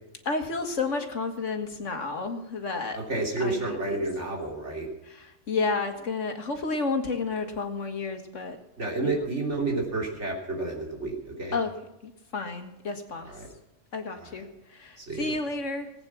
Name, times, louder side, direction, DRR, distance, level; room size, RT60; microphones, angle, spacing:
voice 1, 0.3-3.0 3.4-3.8 5.1-8.6 9.0-9.2 11.5-11.7 12.0-13.4 13.9-15.9, left 4 dB, 75° left, 5 dB, 2.0 m, -31 dB
voice 2, 2.9-4.9 8.8-11.5 13.3-13.5 14.2-14.3 15.0-15.2, right 2 dB, 65° right, -1 dB, 3.5 m, -30 dB
19.0 x 9.1 x 6.0 m, 0.95 s
omnidirectional pair, 1.3 m